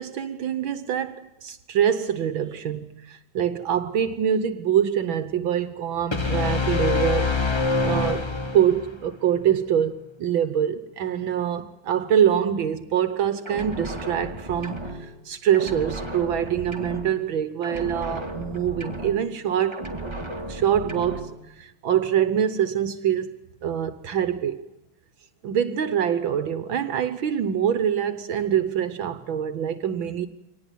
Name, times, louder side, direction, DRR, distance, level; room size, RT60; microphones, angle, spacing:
voice 1, 0.0-7.4 7.8-8.3 8.5-20.2 20.5-23.4 23.6-24.7 25.4-30.3, right 9 dB, 70° right, 1.8 m, -25 dB
sound 1, 6.1-9.0, left 4 dB, 20° left, 0.9 m, -24 dB
sound 2, 13.4-15.3 15.5-17.4 17.6-19.5 19.7-21.4, right 1 dB, 15° right, 2.2 m, -35 dB
24.5 x 19.0 x 9.3 m
omnidirectional pair, 2.3 m